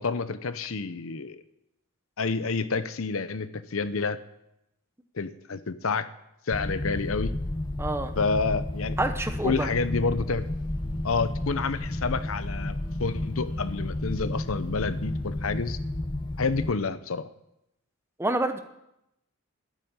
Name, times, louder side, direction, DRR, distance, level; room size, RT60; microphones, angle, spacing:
voice 1, 0.0-1.4 2.2-4.2 5.1-6.1 6.5-7.3 8.2-9.0 9.4-10.5 11.0-15.8 16.4-17.3, left 4 dB, 65° left, 13 dB, 0.7 m, -29 dB
sound 1, 6.5-16.7, left 1 dB, 20° left, 0.6 m, -32 dB
voice 2, 7.8-8.1 9.0-9.7 18.2-18.6, right 1 dB, 10° right, 8 dB, 0.9 m, -27 dB
Wind instrument woodwind instrument, 10.4-15.7, left 3 dB, 85° left, 5.3 m, -51 dB
12.5 x 9.0 x 9.5 m, 0.85 s
head